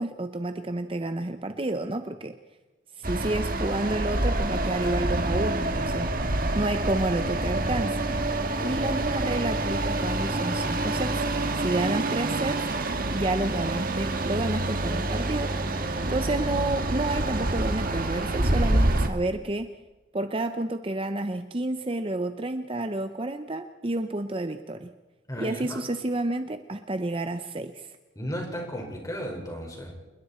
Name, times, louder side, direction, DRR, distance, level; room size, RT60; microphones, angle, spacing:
voice 1, 0.0-2.4 2.9-6.2 6.5-8.0 8.6-11.2 11.6-12.7 13.1-15.5 16.1-19.7 20.1-24.9 25.4-28.0, right 2 dB, 30° right, 9 dB, 0.7 m, -30 dB
sound 1, 3.0-19.1, right 2 dB, 50° right, 1.6 m, -27 dB
voice 2, 8.6-8.9 25.3-25.8 28.1-29.9, equal, 20° left, 1 dB, 5.1 m, -35 dB
28.5 x 21.0 x 4.4 m, 1.1 s
head